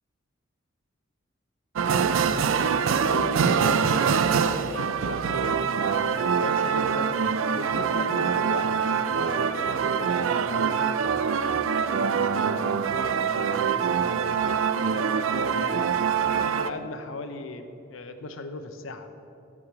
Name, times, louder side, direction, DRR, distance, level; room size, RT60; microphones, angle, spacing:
voice 1, 1.8-2.5 3.0-5.6 6.1-7.2 7.5-12.8 13.3-14.4 14.8-15.9 16.2-19.1, left 2 dB, 80° left, 8 dB, 0.8 m, -37 dB
sound 1, 1.8-16.7, right 6 dB, 75° right, 0.4 m, -24 dB
13.5 x 4.9 x 6.9 m, 2.8 s
head